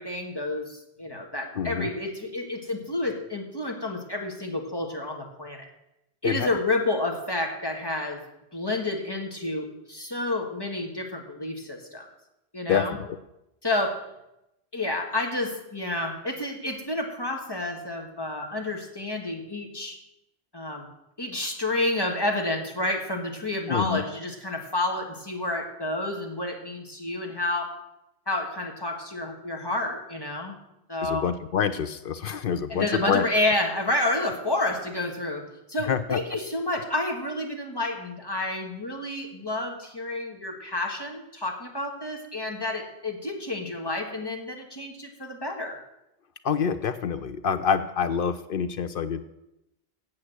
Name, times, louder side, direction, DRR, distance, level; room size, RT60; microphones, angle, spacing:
voice 1, 0.0-5.7 6.2-8.2 8.5-12.1 12.5-13.0 13.6-13.9 14.7-20.0 20.5-20.9 21.2-27.7 28.3-30.6 30.9-31.2 32.7-35.4 35.7-45.8, left 2 dB, 20° left, 1 dB, 1.6 m, -29 dB
voice 2, 1.6-1.9 6.2-6.5 12.7-13.0 23.7-24.0 31.0-33.2 35.9-36.2 46.4-49.2, left 7 dB, 60° left, 11 dB, 0.7 m, -26 dB
8.6 x 7.3 x 7.9 m, 0.89 s
omnidirectional pair, 1.1 m